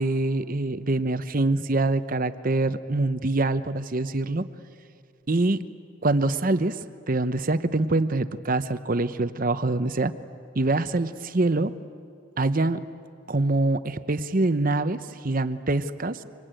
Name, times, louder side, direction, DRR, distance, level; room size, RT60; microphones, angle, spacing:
voice 1, 0.0-4.5 5.3-5.6 6.0-6.8 7.1-10.1 10.5-11.7 12.4-12.8 13.3-16.2, right 2 dB, 40° right, 12 dB, 0.8 m, -24 dB
26.5 x 25.0 x 9.0 m, 2.4 s
head